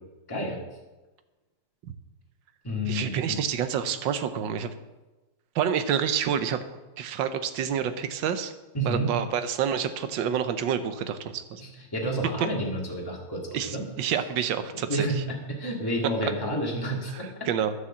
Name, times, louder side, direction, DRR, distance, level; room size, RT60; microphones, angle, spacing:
voice 1, 0.3-0.6 2.6-3.4 8.7-9.1 11.6-13.8 14.7-17.5, right 1 dB, 10° left, -2 dB, 1.9 m, -30 dB
voice 2, 2.9-4.7 5.5-6.6 7.0-8.5 8.8-11.6 13.5-15.2 16.2-16.3 17.1-17.7, right 8 dB, 90° right, 10 dB, 1.5 m, -28 dB
11.5 x 6.5 x 7.2 m, 1.1 s
omnidirectional pair, 2.0 m